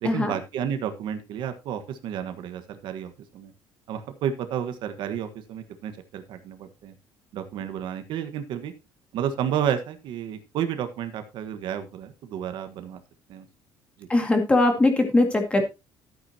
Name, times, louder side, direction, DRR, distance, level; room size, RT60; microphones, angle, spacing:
voice 1, 0.0-3.5 3.9-6.9 7.3-8.7 9.1-13.0 13.3-13.4 14.0-14.1, right 9 dB, 60° right, 8 dB, 1.4 m, -31 dB
voice 2, 14.1-15.6, left 2 dB, 15° left, 5 dB, 2.1 m, -20 dB
13.5 x 8.9 x 2.9 m, 0.26 s
cardioid pair, 175°, 9 cm